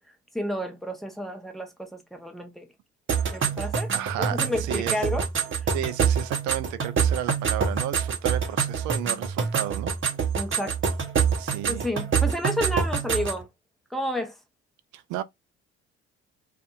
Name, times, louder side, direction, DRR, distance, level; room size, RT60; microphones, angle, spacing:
voice 1, 0.3-2.7 3.3-3.9 4.3-5.3 10.3-10.7 11.7-13.5 13.9-14.3, left 1 dB, ahead, 0.9 m, -30 dB
sound 1, 3.1-13.4, right 6 dB, 35° right, 0.9 m, -26 dB
voice 2, 3.9-5.0 5.7-9.9 11.4-11.9 14.9-15.2, right 12 dB, 60° right, 0.5 m, -32 dB
2.6 x 2.5 x 2.4 m
hypercardioid pair, 50°, 34 cm